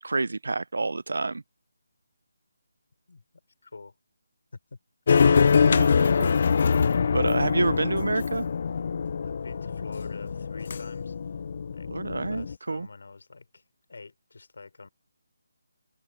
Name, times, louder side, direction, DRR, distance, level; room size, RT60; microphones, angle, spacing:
voice 1, 0.0-1.4 5.6-6.3 7.1-8.5 11.9-12.9, right 3 dB, 80° right, 0.5 m, -28 dB
voice 2, 3.6-3.9 9.2-11.1 11.7-13.6 13.9-14.9, left 3 dB, 65° left, 5.3 m, -46 dB
sound 1, 5.1-12.5, left 6 dB, 40° left, 0.3 m, -24 dB
hypercardioid pair, 175°, 0 cm